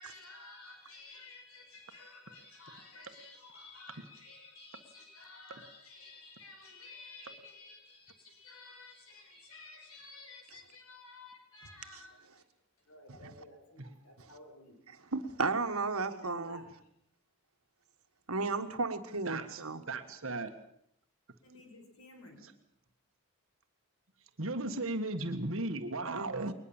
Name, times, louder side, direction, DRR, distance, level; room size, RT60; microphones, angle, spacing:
voice 1, 0.0-12.5 12.8-14.8 16.1-16.7 21.4-22.4, left 3 dB, 80° left, 4 dB, 5.4 m, -53 dB
voice 2, 15.1-16.6 18.3-19.8 26.1-26.5, right 3 dB, 80° right, 8 dB, 1.7 m, -34 dB
voice 3, 19.3-19.6 19.9-20.5 24.4-26.5, right 2 dB, 65° right, 6 dB, 1.6 m, -36 dB
22.0 x 20.5 x 7.3 m, 0.72 s
head